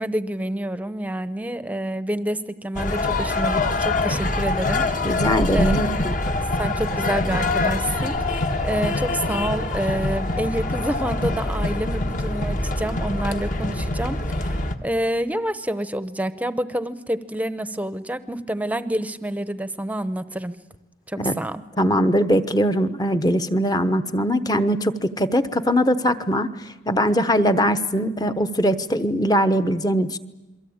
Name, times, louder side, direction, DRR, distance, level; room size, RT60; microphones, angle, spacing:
voice 1, 0.0-4.9 5.5-5.8 6.6-20.5 21.1-21.6, right 1 dB, 10° right, 13 dB, 0.9 m, -28 dB
sound 1, 2.7-14.8, left 2 dB, 40° left, 1.5 m, -24 dB
voice 2, 5.0-6.1 21.2-21.3 21.8-30.2, equal, 20° left, 10 dB, 1.0 m, -21 dB
28.5 x 23.5 x 8.8 m, 1.0 s
head